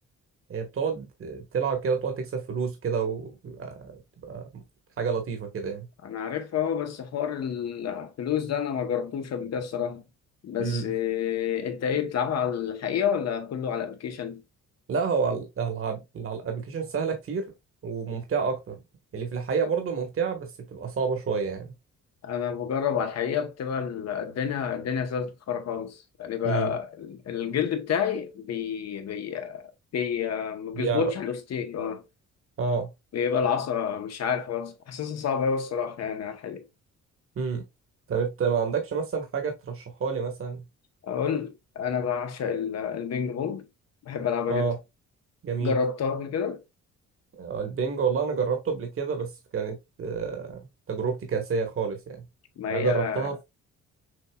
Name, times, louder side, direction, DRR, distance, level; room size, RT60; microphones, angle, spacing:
voice 1, 0.5-4.4 5.0-5.9 10.6-10.8 14.9-17.4 17.8-18.7 19.1-21.7 26.4-26.7 30.7-31.0 32.6-32.9 37.4-37.6 38.1-40.6 44.5-44.8 45.4-45.8 47.4-50.6 50.9-52.2 52.7-53.4, right 5 dB, 45° right, 1.3 m, -29 dB
voice 2, 6.0-10.0 10.4-14.4 22.2-32.0 33.1-36.6 41.0-43.7 44.0-44.7 45.6-46.6 52.6-53.3, left 7 dB, 55° left, 1.0 m, -29 dB
6.3 x 2.7 x 2.3 m
cardioid pair, 90°, 30 cm